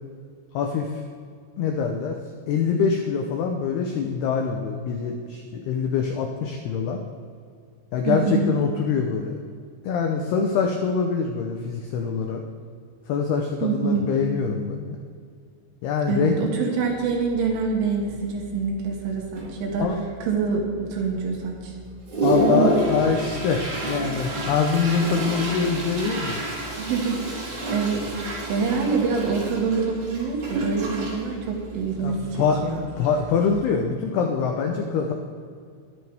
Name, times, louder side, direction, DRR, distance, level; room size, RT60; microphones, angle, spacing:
voice 1, 0.5-1.0 1.6-2.2 2.5-7.0 7.9-9.4 9.8-12.4 13.1-15.0 15.8-16.3 16.6-16.7 19.8-20.0 22.2-26.4 32.0-32.6 33.0-35.1, left 6 dB, 85° left, 3 dB, 2.3 m, -24 dB
voice 2, 8.1-8.5 13.6-14.2 16.1-19.9 20.3-21.8 26.8-27.3 27.6-32.3 32.6-32.8, right 5 dB, 70° right, 0 dB, 4.4 m, -25 dB
Toilet flush, 16.8-16.9 17.4-17.6 17.9-18.5 19.0-19.1 19.4-20.1 20.6-20.7 21.2-21.3 21.7-33.7, right 2 dB, 40° right, 4.7 m, -28 dB
22.0 x 11.0 x 3.5 m, 2.2 s
omnidirectional pair, 5.9 m